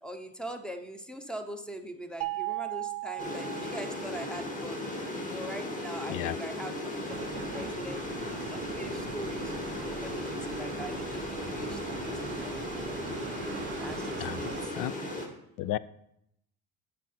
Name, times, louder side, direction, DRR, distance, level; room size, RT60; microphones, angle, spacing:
voice 1, 0.0-4.8 5.3-7.1 7.5-12.1 12.4-12.6 13.8-14.8, right 1 dB, ahead, 6 dB, 0.8 m, -42 dB
sound 1, 2.2-4.4, right 21 dB, 85° right, 0.7 m, -36 dB
sound 2, 3.2-15.3, left 1 dB, 20° left, 1.7 m, -36 dB
sound 3, 7.1-14.7, right 9 dB, 30° right, 0.4 m, -42 dB
voice 2, 14.2-14.9 15.6-15.8, left 14 dB, 65° left, 18 dB, 0.5 m, -33 dB
8.7 x 6.4 x 4.3 m, 0.77 s
cardioid pair, 120°, 37 cm